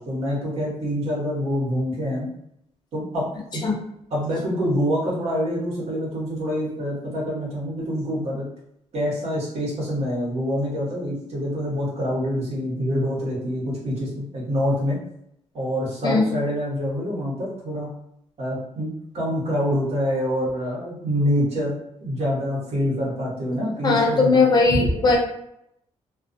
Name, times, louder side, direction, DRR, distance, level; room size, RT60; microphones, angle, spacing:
voice 1, 0.0-2.3 2.9-3.3 3.5-3.7 4.1-8.5 8.9-15.0 15.5-17.9 18.4-21.8 22.0-24.4, equal, 60° right, -5 dB, 1.1 m, -26 dB
voice 2, 23.8-25.2, left 3 dB, 35° left, -1 dB, 0.5 m, -18 dB
2.3 x 2.3 x 2.5 m, 0.77 s
wide cardioid pair, 160°, 12 cm